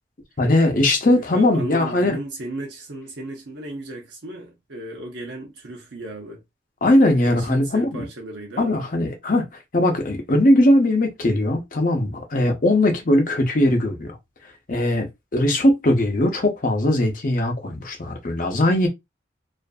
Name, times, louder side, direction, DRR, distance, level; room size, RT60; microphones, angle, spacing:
voice 1, 0.4-2.2 6.8-8.0 8.6-9.5 9.7-14.2 14.7-18.9, left 1 dB, 45° left, 0.6 m, -19 dB
voice 2, 1.1-6.4 7.2-8.8, right 2 dB, 65° right, 0.6 m, -35 dB
2.5 x 2.4 x 2.3 m
head